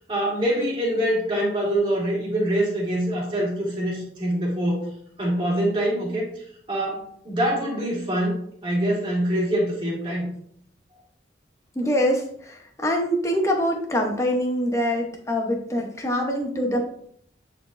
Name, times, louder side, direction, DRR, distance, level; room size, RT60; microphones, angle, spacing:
voice 1, 0.1-4.9 5.2-10.3, right 1 dB, 30° right, -5 dB, 2.4 m, -25 dB
voice 2, 11.7-16.8, equal, 15° left, 2 dB, 0.9 m, -24 dB
9.4 x 4.2 x 2.6 m, 0.66 s
head